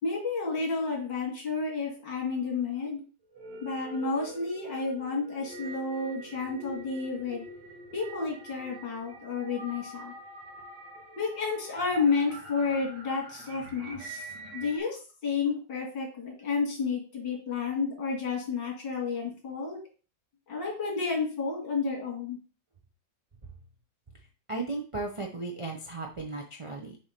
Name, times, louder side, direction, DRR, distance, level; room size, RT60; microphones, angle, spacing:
voice 1, 0.0-3.0 3.6-7.4 7.9-10.1 11.2-19.8 20.5-22.4, left 4 dB, 85° left, -1 dB, 2.9 m, -31 dB
sound 1, 3.2-14.8, right 2 dB, 80° right, 2.1 m, -45 dB
voice 2, 24.5-27.0, right 3 dB, 45° right, 0 dB, 0.4 m, -35 dB
6.9 x 2.9 x 5.1 m, 0.36 s
omnidirectional pair, 1.9 m